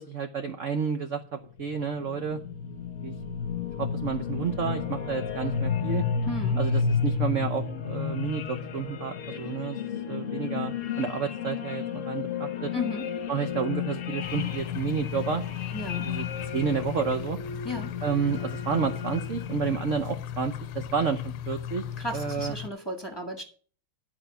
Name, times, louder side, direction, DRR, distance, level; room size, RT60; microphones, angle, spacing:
voice 1, 0.0-2.4 3.0-3.1 3.8-6.0 6.6-9.8 10.1-12.7 13.3-15.4 16.0-16.2 16.5-17.4 18.0-21.8 22.1-22.6, right 6 dB, 55° right, 7 dB, 0.8 m, -30 dB
sound 1, 1.6-20.0, left 6 dB, 50° left, 1.0 m, -32 dB
voice 2, 6.2-6.6 12.7-13.1 15.7-16.1 17.6-17.9 22.0-23.4, left 2 dB, 15° left, 0 dB, 1.3 m, -34 dB
sound 2, 14.2-22.7, left 9 dB, 85° left, 1.5 m, -37 dB
12.0 x 4.9 x 6.9 m, 0.42 s
omnidirectional pair, 2.3 m